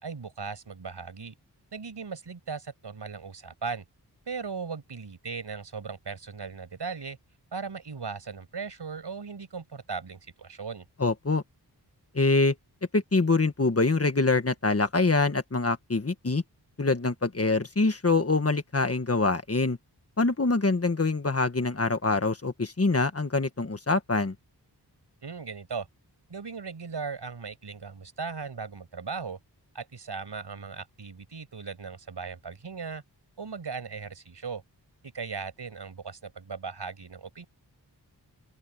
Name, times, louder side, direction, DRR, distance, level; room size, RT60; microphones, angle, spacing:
voice 1, 0.0-1.4 1.7-3.8 4.3-7.2 7.5-10.9 25.2-25.9 26.3-29.4 29.7-33.0 33.4-34.6 35.1-37.5, right 5 dB, 80° right, 6.2 m, -38 dB
voice 2, 11.0-11.4 12.1-12.5 12.9-16.4 16.8-19.8 20.2-24.3, left 3 dB, 35° left, 1.6 m, -25 dB
open air
wide cardioid pair, 100°, 41 cm